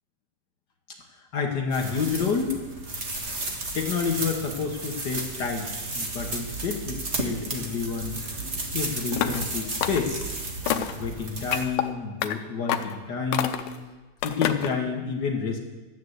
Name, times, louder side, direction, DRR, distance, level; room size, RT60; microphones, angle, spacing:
voice 1, 1.3-2.6 3.7-8.1 8.7-10.2 11.0-13.6 14.2-15.6, left 5 dB, 60° left, 2 dB, 1.1 m, -29 dB
sound 1, 1.7-11.6, right 2 dB, 30° right, 1.3 m, -33 dB
sound 2, 9.1-9.5 9.8-10.3 10.7-11.0 11.5-11.8 12.2-12.3 12.7-13.0 13.3-13.8 14.2-14.7, left 10 dB, 80° left, 2.2 m, -27 dB
12.5 x 9.9 x 8.0 m, 1.2 s
omnidirectional pair, 3.7 m